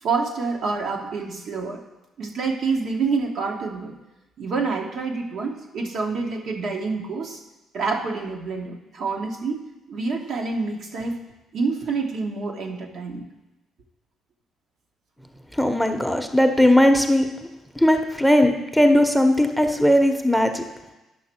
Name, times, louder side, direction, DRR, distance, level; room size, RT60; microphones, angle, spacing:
voice 1, 0.0-1.8 2.2-4.0 4.4-7.4 7.7-11.2 11.5-13.2, right 4 dB, 60° right, 1 dB, 1.2 m, -27 dB
voice 2, 15.6-17.3 17.8-20.6, left 1 dB, ahead, 6 dB, 0.9 m, -18 dB
9.2 x 5.9 x 4.4 m, 1.0 s
hypercardioid pair, 45°, 0 cm